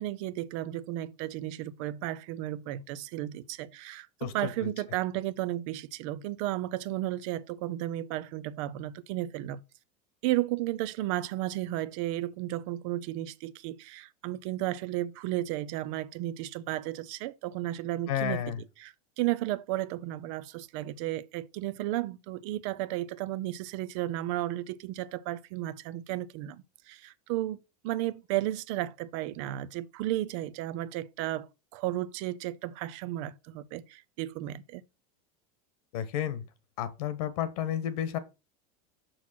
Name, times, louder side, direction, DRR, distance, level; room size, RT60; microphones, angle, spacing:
voice 1, 0.0-9.6 10.2-34.8, right 15 dB, 50° right, 0.6 m, -34 dB
voice 2, 4.2-4.7 18.1-18.6 35.9-36.4 36.8-38.2, left 10 dB, 70° left, 1.5 m, -31 dB
6.3 x 5.9 x 6.0 m
supercardioid pair, 165°, 20 cm